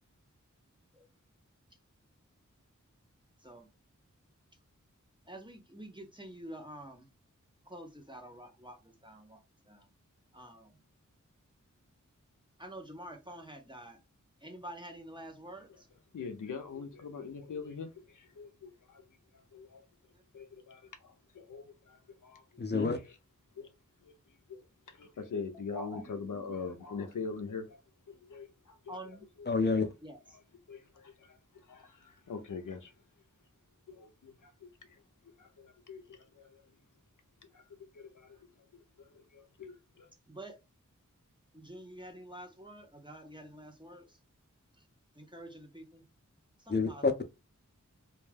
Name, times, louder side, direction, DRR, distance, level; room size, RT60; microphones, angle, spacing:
voice 1, 5.3-7.1 7.7-9.9 10.3-10.7 12.6-14.0 14.4-15.9 25.5-26.7 28.9-29.3 30.0-30.4 40.3-40.6 41.5-44.2 45.1-46.0 46.6-47.1, right 1 dB, 15° right, 0.6 m, -48 dB
voice 2, 16.1-19.0 19.5-19.8 20.3-22.4 22.7-22.9 23.6-23.7 24.0-24.1 24.5-24.6 24.9-27.8 28.1-28.5 28.9-29.0 29.6-29.7 30.7-31.4 31.7-32.9 33.9-34.3 35.4-36.6 37.9-38.4 38.7-39.1 39.3-40.1, left 5 dB, 80° left, 0.5 m, -43 dB
voice 3, 22.6-23.0 29.5-29.9 46.7-47.2, left 4 dB, 35° left, 0.6 m, -28 dB
2.3 x 2.2 x 3.2 m
wide cardioid pair, 50°, 31 cm